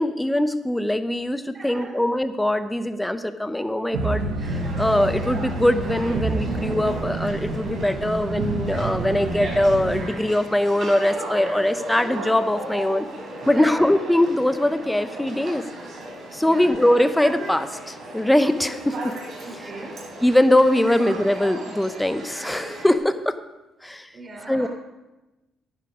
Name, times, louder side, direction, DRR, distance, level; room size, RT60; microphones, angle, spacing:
voice 1, 0.0-4.3 4.8-13.1 13.5-15.7 16.3-19.0 20.2-23.4 23.8-24.1 24.5-24.7, left 1 dB, 10° left, 11 dB, 1.0 m, -22 dB
voice 2, 1.5-2.0 13.5-13.7 16.4-16.7 19.4-19.9 20.9-21.0 24.1-24.7, right 2 dB, 40° right, 2 dB, 3.7 m, -39 dB
sound 1, 3.9-10.1, right 3 dB, 75° right, 1.5 m, -28 dB
sound 2, 4.4-23.0, right 1 dB, 60° right, 4.4 m, -36 dB
12.0 x 9.7 x 5.1 m, 1.0 s
hypercardioid pair, 55°, 0 cm